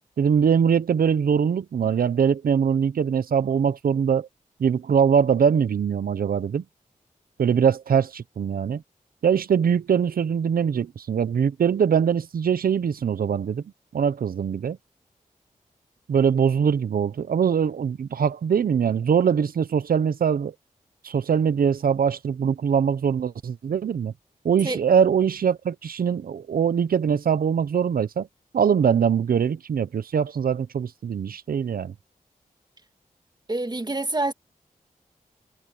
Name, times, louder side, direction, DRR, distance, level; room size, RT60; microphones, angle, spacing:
voice 1, 0.2-4.3 4.6-6.6 7.4-8.8 9.2-13.6 13.9-14.8 16.1-20.5 21.0-24.1 24.4-28.3 28.5-31.9, right 7 dB, 85° right, 0.9 m, -22 dB
voice 2, 33.5-34.3, right 2 dB, 30° right, 1.8 m, -26 dB
cardioid pair, 45°, 15 cm